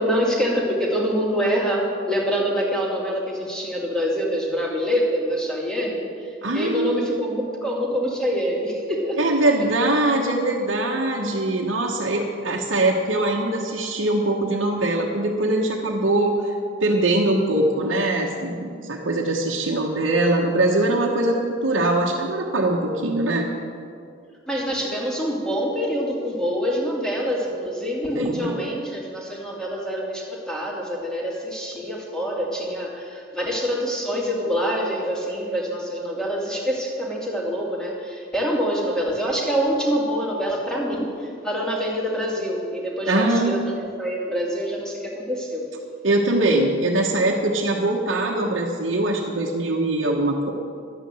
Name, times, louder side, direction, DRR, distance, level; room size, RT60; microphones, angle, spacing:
voice 1, 0.0-9.2 24.5-45.7, equal, 5° left, -3 dB, 2.4 m, -25 dB
voice 2, 6.4-7.2 9.2-16.5 16.8-23.5 28.1-28.6 43.1-43.7 46.0-50.5, right 2 dB, 90° right, -2 dB, 1.2 m, -22 dB
11.5 x 8.7 x 7.7 m, 2.3 s
head